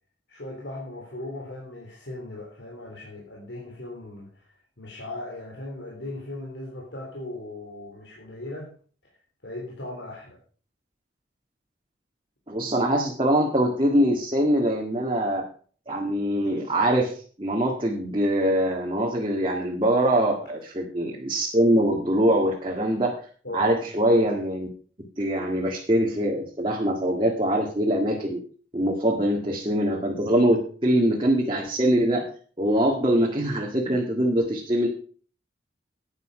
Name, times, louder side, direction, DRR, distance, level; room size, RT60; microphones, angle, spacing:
voice 1, 0.3-8.7 9.4-10.4 23.4-23.7, left 2 dB, 80° left, -3 dB, 3.6 m, -38 dB
voice 2, 12.5-15.4 15.9-17.1 17.4-23.1 23.5-24.7 25.2-28.4 28.7-32.3 32.6-34.9, right 1 dB, 30° right, -1 dB, 1.9 m, -23 dB
11.0 x 9.7 x 5.0 m, 0.42 s
head